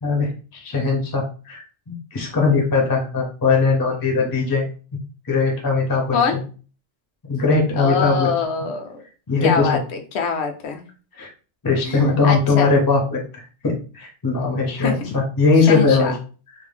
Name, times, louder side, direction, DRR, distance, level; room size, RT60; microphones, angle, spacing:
voice 1, 0.0-4.7 5.3-6.4 7.2-8.3 9.3-9.7 11.1-11.3 11.6-16.1, left 4 dB, 30° left, 0 dB, 0.4 m, -20 dB
voice 2, 7.7-8.9 9.4-10.8 11.8-12.7 14.8-15.1 15.7-16.1, left 5 dB, 70° left, 4 dB, 0.8 m, -24 dB
2.6 x 2.0 x 3.2 m, 0.37 s
omnidirectional pair, 1.2 m